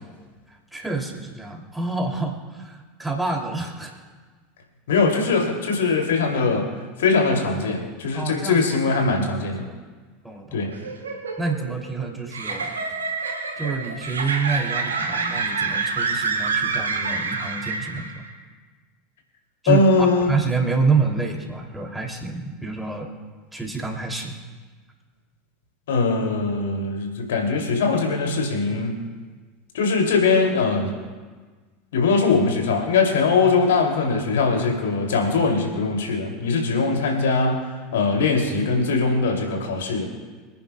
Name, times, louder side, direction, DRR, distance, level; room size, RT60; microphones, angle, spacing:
voice 1, 0.7-3.9 8.1-9.8 10.2-10.7 11.4-12.8 13.6-18.1 19.6-23.1 23.5-24.3, right 4 dB, 5° right, 1 dB, 2.6 m, -27 dB
voice 2, 4.9-6.7 7.0-9.6 10.5-10.7 19.7-20.3 25.9-29.0 29.7-30.9 31.9-37.6 37.9-40.1, left 4 dB, 65° left, 1 dB, 2.5 m, -21 dB
sound 1, 10.7-18.3, right 4 dB, 75° right, 1.2 m, -27 dB
27.0 x 10.0 x 2.2 m, 1.4 s
figure-of-eight pair, 75°, 0 cm